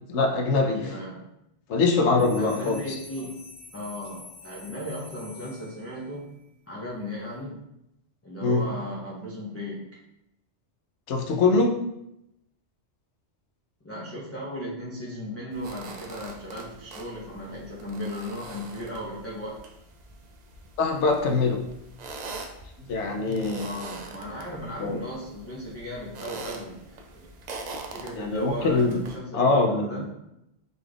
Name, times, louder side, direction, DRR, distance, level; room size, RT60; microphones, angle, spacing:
voice 1, 0.1-0.8 1.7-3.0 8.4-8.6 11.1-11.7 20.8-21.6 22.9-23.7 24.8-25.0 28.2-29.0 29.3-30.0, left 3 dB, 75° left, 3 dB, 0.9 m, -23 dB
voice 2, 0.6-1.3 2.4-3.4 3.7-6.4 6.7-7.6 8.2-9.9 13.8-19.6 23.6-27.3 27.9-30.0, left 1 dB, 20° left, -7 dB, 0.4 m, -36 dB
sound 1, 2.2-6.2, left 3 dB, 40° left, 1.0 m, -47 dB
sound 2, 15.5-29.2, right 3 dB, 65° right, 0.4 m, -43 dB
3.9 x 2.4 x 3.3 m, 0.83 s
omnidirectional pair, 1.2 m